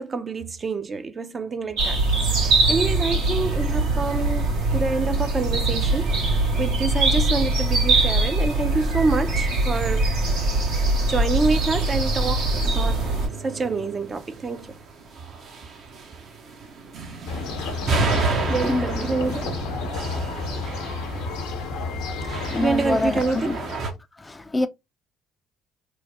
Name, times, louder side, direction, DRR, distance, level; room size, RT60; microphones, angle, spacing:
voice 1, 0.0-2.0 2.4-10.1 11.1-13.1 13.4-14.8 18.4-19.5 22.2-22.3 22.6-23.6, right 3 dB, 35° right, 0.5 m, -27 dB
sound 1, 1.8-13.3, right 2 dB, 80° right, 1.1 m, -22 dB
sound 2, 10.2-23.9, right 3 dB, 60° right, 0.8 m, -32 dB
sound 3, 17.3-24.0, left 3 dB, 85° left, 0.8 m, -31 dB
voice 2, 18.6-19.1 22.5-23.6 24.2-24.7, left 2 dB, 20° left, 0.3 m, -25 dB
3.1 x 2.1 x 3.0 m
supercardioid pair, 65°, 0 cm